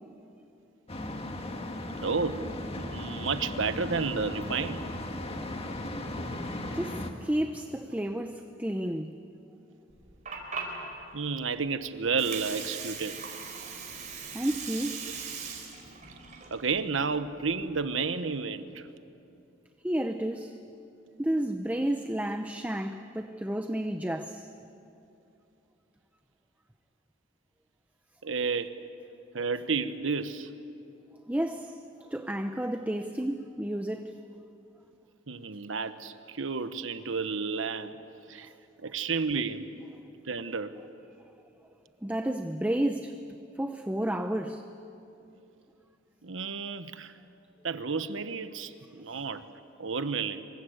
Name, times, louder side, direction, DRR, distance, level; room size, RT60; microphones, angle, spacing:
sound 1, 0.9-7.1, left 1 dB, 30° left, 1.8 m, -36 dB
voice 1, 2.0-2.5 2.7-4.9 11.1-13.2 16.5-18.9 28.2-28.8 29.3-30.5 35.3-38.0 38.3-38.5 38.8-39.7 40.2-40.8 46.2-47.1 47.6-49.5 49.8-50.4, right 5 dB, 80° right, 1.2 m, -31 dB
voice 2, 6.7-9.2 14.3-15.1 19.8-20.6 21.2-24.5 31.3-34.2 42.0-43.2 43.6-44.7 49.1-49.2, right 1 dB, 10° right, 0.7 m, -31 dB
Water, 9.9-17.8, right 5 dB, 40° right, 4.7 m, -40 dB
27.0 x 23.5 x 8.1 m
head